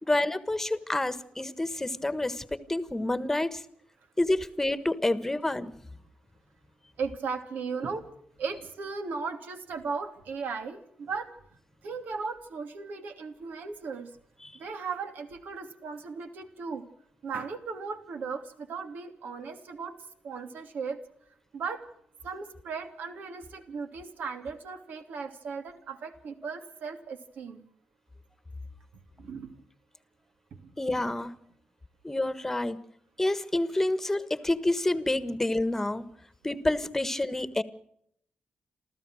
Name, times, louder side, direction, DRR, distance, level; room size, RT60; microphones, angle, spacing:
voice 1, 0.0-3.6 4.2-5.7 14.4-14.5 30.8-31.3 32.0-32.8 33.2-36.0 36.4-37.6, left 1 dB, 10° left, 14 dB, 1.4 m, -28 dB
voice 2, 7.0-8.1 8.4-11.3 11.8-14.1 14.5-16.9 17.2-19.9 20.2-21.0 21.5-21.8 22.2-27.6 29.2-29.5 30.6-30.7, right 5 dB, 85° right, 6 dB, 3.0 m, -36 dB
28.0 x 14.5 x 6.4 m, 0.70 s
wide cardioid pair, 140°, 3 cm